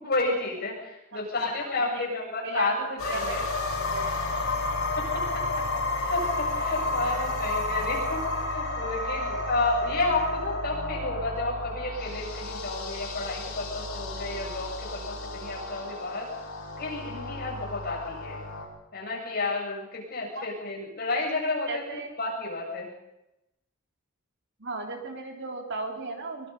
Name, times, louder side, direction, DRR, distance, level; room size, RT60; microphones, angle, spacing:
voice 1, 0.0-2.8 3.0-3.4 5.1-5.4 5.9-16.3 16.8-18.4 18.9-22.9, left 2 dB, 45° left, -2 dB, 8.0 m, -31 dB
voice 2, 1.1-2.1 2.4-4.2 20.4-20.5 21.7-22.1 24.6-26.5, right 3 dB, 55° right, 2 dB, 3.8 m, -37 dB
sound 1, 3.0-18.6, left 2 dB, 65° left, 6.4 m, -31 dB
23.5 x 23.5 x 5.5 m, 0.89 s
head